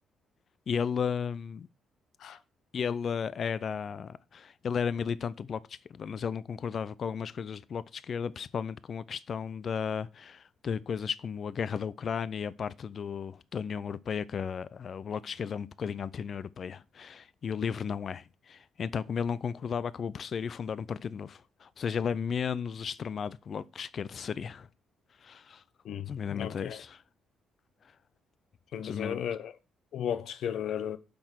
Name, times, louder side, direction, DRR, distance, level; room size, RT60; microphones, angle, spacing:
voice 1, 0.7-1.7 2.7-24.7 25.2-25.6 26.1-27.0 28.8-29.2, left 7 dB, 50° left, 0.5 m, -34 dB
voice 2, 25.8-26.8 28.7-29.5 29.9-31.0, left 9 dB, 75° left, 1.0 m, -34 dB
8.7 x 5.9 x 6.3 m
cardioid pair, 90°, 0 cm